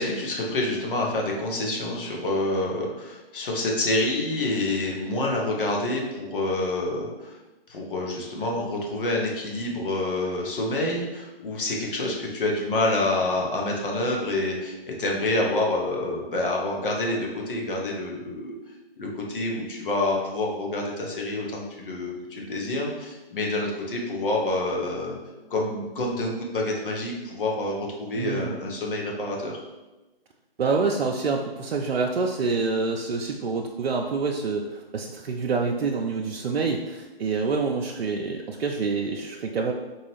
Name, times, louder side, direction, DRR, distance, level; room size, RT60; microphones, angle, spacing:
voice 1, 0.0-7.3 7.7-18.5 19.0-25.2 25.5-29.6, left 2 dB, 60° left, -1 dB, 1.1 m, -27 dB
voice 2, 28.2-28.6 30.6-39.7, right 4 dB, 75° right, 1 dB, 0.5 m, -27 dB
4.6 x 2.4 x 3.2 m, 1.1 s
figure-of-eight pair, 145°, 31 cm